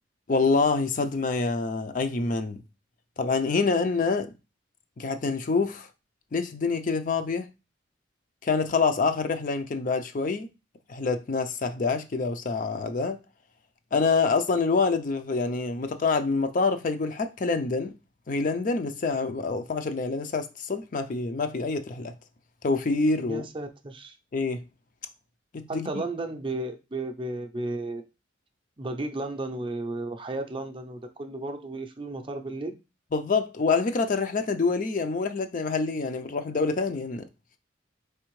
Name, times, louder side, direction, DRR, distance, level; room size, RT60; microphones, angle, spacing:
voice 1, 0.3-2.6 3.2-4.3 5.0-5.9 6.3-7.5 8.4-10.5 10.9-13.2 13.9-17.9 18.3-22.1 22.6-23.4 24.3-24.6 25.7-26.0 33.1-37.2, left 4 dB, 45° left, 0.4 m, -26 dB
voice 2, 23.2-24.2 25.7-28.0 28.8-32.7, right 2 dB, 25° right, 0.5 m, -34 dB
4.4 x 3.3 x 3.1 m
head